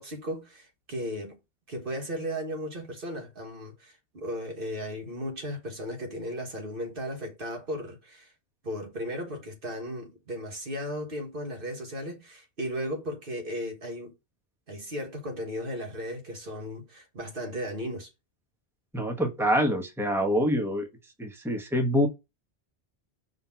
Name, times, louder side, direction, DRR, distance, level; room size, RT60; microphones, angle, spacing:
voice 1, 0.0-1.4 1.7-8.3 8.6-14.1 14.7-18.1, equal, 60° right, 1.6 m, -36 dB
voice 2, 18.9-20.9 21.2-22.1, equal, ahead, 1.2 m, -25 dB
5.7 x 4.0 x 5.7 m
omnidirectional pair, 1.1 m